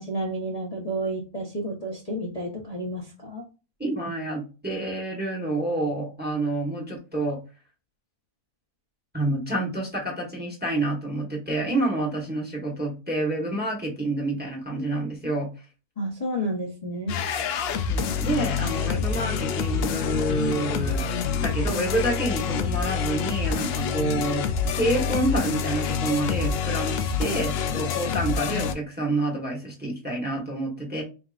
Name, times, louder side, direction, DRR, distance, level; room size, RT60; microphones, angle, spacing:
voice 1, 0.0-3.4 16.0-17.1, right 1 dB, 30° left, -4 dB, 0.8 m, -31 dB
voice 2, 3.8-7.4 9.1-15.5 17.9-21.0 21.3-24.5 24.8-31.0, right 2 dB, 5° right, -1 dB, 1.0 m, -28 dB
sound 1, 17.1-28.7, left 6 dB, 85° left, 0.5 m, -27 dB
4.4 x 3.5 x 2.5 m, 0.32 s
omnidirectional pair, 1.6 m